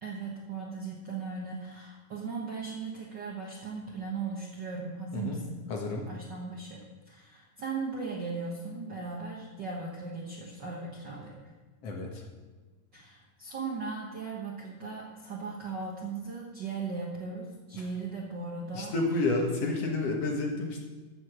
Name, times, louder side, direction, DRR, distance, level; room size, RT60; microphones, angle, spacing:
voice 1, 0.0-5.6 6.1-11.5 12.9-19.0, right 4 dB, 55° right, -3 dB, 1.3 m, -38 dB
voice 2, 5.7-6.1 11.8-12.2 18.7-20.8, left 2 dB, 55° left, 0 dB, 2.2 m, -30 dB
15.0 x 6.7 x 6.1 m, 1.3 s
omnidirectional pair, 3.8 m